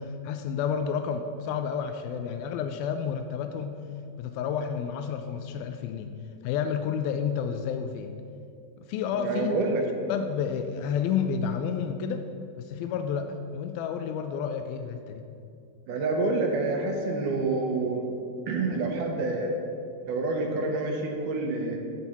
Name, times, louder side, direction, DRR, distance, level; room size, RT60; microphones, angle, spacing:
voice 1, 0.0-3.8 4.2-6.1 6.4-8.1 8.8-9.8 10.1-12.3 12.6-15.2, left 7 dB, 80° left, 6 dB, 2.3 m, -30 dB
voice 2, 9.2-9.8 15.9-18.0 18.5-19.5 20.0-21.8, right 3 dB, 70° right, 2 dB, 2.2 m, -27 dB
13.0 x 4.5 x 8.4 m, 2.6 s
omnidirectional pair, 4.5 m